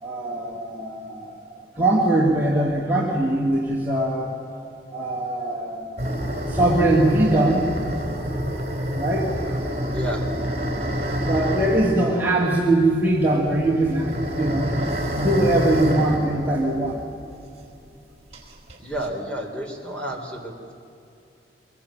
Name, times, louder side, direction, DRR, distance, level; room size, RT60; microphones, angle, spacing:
voice 1, 0.0-4.3 4.9-6.1 6.5-7.7 9.0-9.3 11.2-17.0, right 1 dB, 10° right, -4 dB, 2.6 m, -22 dB
sound 1, 6.0-17.4 17.7-17.8 18.3-19.1, equal, 35° right, 4.1 m, -28 dB
voice 2, 9.9-10.3 18.8-20.8, right 1 dB, 5° left, 1 dB, 3.5 m, -31 dB
24.5 x 21.5 x 8.8 m, 2.7 s
head